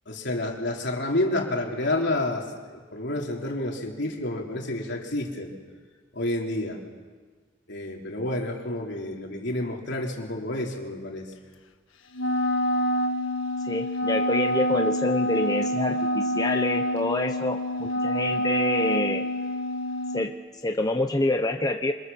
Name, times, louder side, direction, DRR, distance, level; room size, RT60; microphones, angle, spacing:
voice 1, 0.1-5.5 6.1-6.8 7.7-11.3, left 1 dB, 60° left, 0 dB, 3.7 m, -29 dB
Wind instrument woodwind instrument, 12.1-20.3, equal, 85° left, 1.6 m, -27 dB
voice 2, 13.6-19.2 20.1-20.3 20.6-21.9, left 2 dB, 20° left, 5 dB, 0.9 m, -27 dB
26.5 x 26.5 x 7.1 m, 1.5 s
head